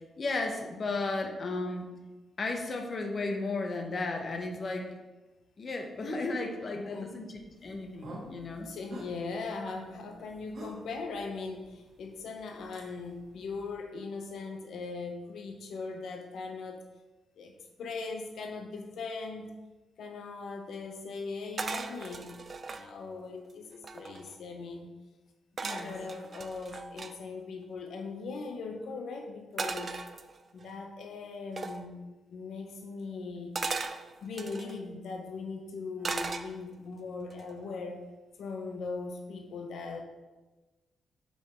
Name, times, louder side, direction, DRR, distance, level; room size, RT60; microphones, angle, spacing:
voice 1, 0.2-1.8 2.4-4.9 5.6-8.7 25.6-26.0, left 3 dB, 35° left, 4 dB, 0.8 m, -34 dB
voice 2, 6.8-7.1 8.6-16.8 17.4-17.5 17.8-19.5 20.0-22.3 22.7-24.9 25.6-30.0 30.5-32.0 32.3-33.6 34.2-38.1 38.4-40.0, left 4 dB, 70° left, 3 dB, 0.6 m, -39 dB
sound 1, 7.5-13.8, right 1 dB, 55° right, 1.5 m, -50 dB
sound 2, 21.6-22.9 23.5-23.6 23.7-24.4 25.6-27.1 29.6-30.7 31.6-31.8 33.6-34.8 36.0-36.9 37.3-37.7, right 4 dB, 35° right, 0.4 m, -37 dB
5.5 x 4.7 x 4.4 m, 1.2 s
cardioid pair, 140°, 0 cm